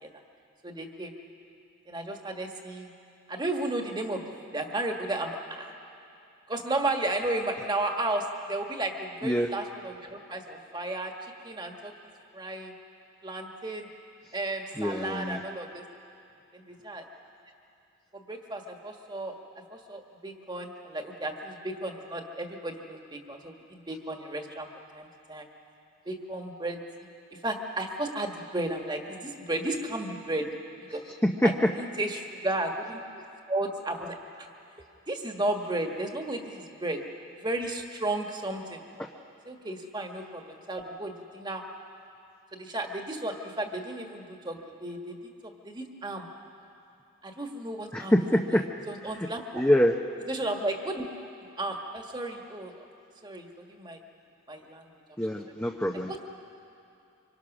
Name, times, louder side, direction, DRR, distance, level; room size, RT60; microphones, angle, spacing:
voice 1, 0.6-1.1 1.9-2.9 3.3-5.7 6.5-11.9 12.3-12.7 13.2-13.9 14.3-15.8 16.5-17.1 18.1-19.3 19.7-24.7 24.9-25.5 26.0-26.8 27.3-30.5 30.9-31.0 31.4-33.0 33.5-34.5 35.1-37.0 37.4-38.8 39.4-41.6 42.5-45.2 45.4-46.3 47.2-48.6 48.9-49.6 50.3-51.1 51.4-52.7 53.2-54.0 54.5-55.0 56.1-56.2, right 2 dB, 20° right, 3 dB, 1.6 m, -34 dB
voice 2, 14.8-15.4 31.4-31.7 39.0-39.1 47.9-48.6 49.1-49.3 49.5-49.9 55.2-56.2, equal, 10° left, 1 dB, 0.7 m, -25 dB
25.5 x 25.0 x 6.1 m, 2.6 s
head